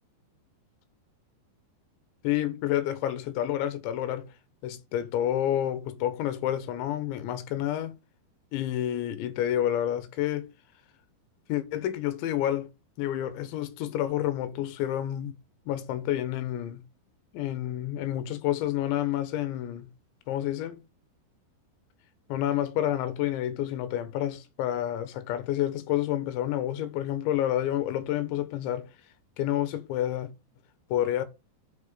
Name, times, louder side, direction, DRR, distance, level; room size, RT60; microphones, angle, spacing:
voice 1, 2.2-4.3 4.6-8.0 8.5-10.5 11.5-12.7 13.0-15.4 15.7-16.8 17.3-19.9 20.3-20.8 22.3-28.9 29.4-30.3 30.9-31.3, left 12 dB, 85° left, 3.5 m, -29 dB
8.8 x 7.5 x 6.9 m
omnidirectional pair, 5.2 m